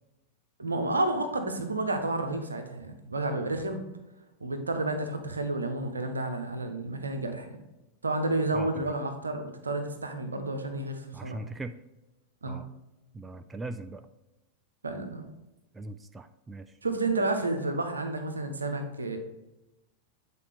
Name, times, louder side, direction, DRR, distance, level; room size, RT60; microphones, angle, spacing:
voice 1, 0.6-3.8 4.4-7.6 8.0-11.4 12.4-12.6 14.8-15.3 16.8-19.2, right 2 dB, 75° right, 7 dB, 0.8 m, -31 dB
voice 2, 8.5-8.8 11.1-11.7 12.5-12.7 13.1-14.1 15.7-16.7, right 2 dB, 15° right, 10 dB, 0.3 m, -40 dB
8.3 x 4.2 x 3.5 m, 0.98 s
figure-of-eight pair, 90°, 0 cm